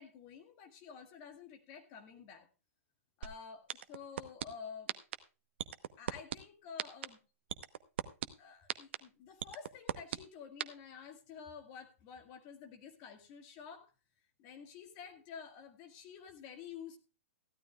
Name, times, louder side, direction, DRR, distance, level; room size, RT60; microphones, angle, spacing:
voice 1, 0.0-2.5 3.2-4.9 6.0-7.2 8.4-13.9 14.4-17.0, left 6 dB, 25° left, 5 dB, 1.9 m, -50 dB
sound 1, 3.2-3.3 3.7-4.4 4.9-5.1 5.6-6.3 6.8-7.1 7.5-8.2 8.7-9.0 9.4-10.2 10.6-10.7, right 11 dB, 50° right, 1.0 m, -35 dB
16.5 x 12.5 x 2.4 m, 0.31 s
hypercardioid pair, 175°, 8 cm